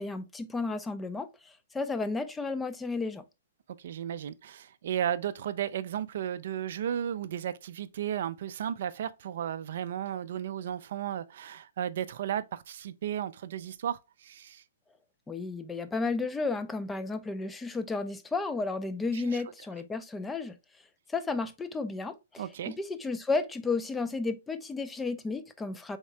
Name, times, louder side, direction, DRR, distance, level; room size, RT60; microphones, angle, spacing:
voice 1, 0.0-3.2 15.3-20.6 21.1-26.0, left 3 dB, 10° left, 0.4 m, -33 dB
voice 2, 3.8-14.6 19.1-19.4 22.4-22.8, right 10 dB, 60° right, 0.3 m, -34 dB
3.6 x 3.2 x 3.1 m
hypercardioid pair, 125°, 0 cm